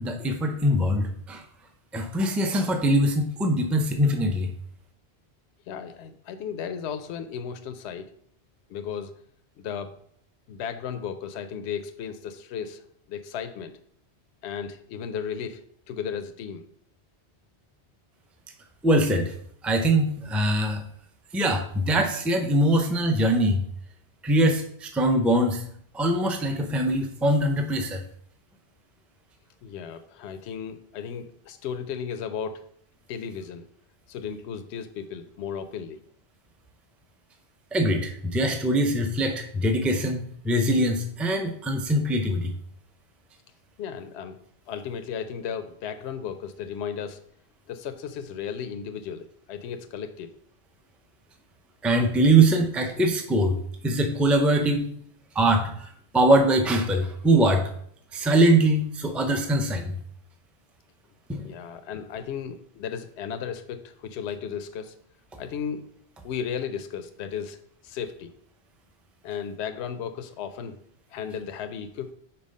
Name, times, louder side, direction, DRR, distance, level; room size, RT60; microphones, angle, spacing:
voice 1, 0.0-1.4 1.9-4.5 18.8-19.3 19.6-20.8 21.3-23.6 24.2-25.6 25.9-28.0 37.7-42.5 51.8-53.6 53.8-54.9 55.3-57.7 58.1-59.9 61.3-61.5, right 1 dB, ahead, 4 dB, 0.5 m, -22 dB
voice 2, 5.7-8.1 8.7-9.1 9.6-9.9 10.5-13.7 14.4-16.6 29.6-32.6 33.1-33.7 34.1-36.0 43.8-44.4 44.7-47.2 47.7-50.3 61.4-64.9 65.4-65.8 66.2-67.6 67.8-68.3 69.2-70.8 71.1-72.1, left 7 dB, 80° left, 9 dB, 0.8 m, -35 dB
5.5 x 4.5 x 5.2 m, 0.65 s
omnidirectional pair, 1.1 m